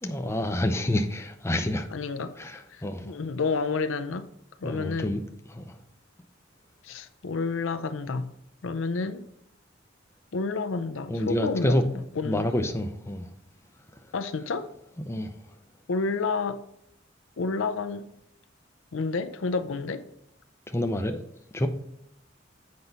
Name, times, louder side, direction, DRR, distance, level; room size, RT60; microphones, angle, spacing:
voice 1, 0.0-1.9 2.4-3.1 4.6-5.2 5.5-5.7 11.1-11.8 12.2-13.3 15.1-15.3 20.7-21.2 21.5-21.7, left 1 dB, 15° left, 0.6 m, -28 dB
voice 2, 1.9-2.3 2.7-4.3 4.6-5.2 6.8-8.3 8.6-9.2 10.3-12.5 14.1-14.7 15.9-16.6 17.4-18.1 18.9-20.0, left 4 dB, 75° left, 0.6 m, -30 dB
7.9 x 5.4 x 4.0 m
head